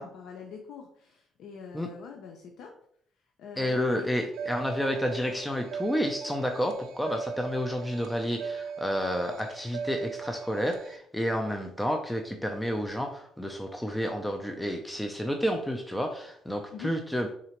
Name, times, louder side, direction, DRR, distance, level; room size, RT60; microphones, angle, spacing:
voice 1, 0.0-2.8 3.4-4.1 16.7-16.9, left 6 dB, 80° left, 2 dB, 0.5 m, -44 dB
voice 2, 3.6-17.3, equal, 5° left, 3 dB, 0.4 m, -30 dB
sound 1, 4.3-11.0, right 6 dB, 90° right, 0.3 m, -39 dB
4.1 x 3.8 x 2.9 m, 0.68 s
cardioid pair, 120°, 0 cm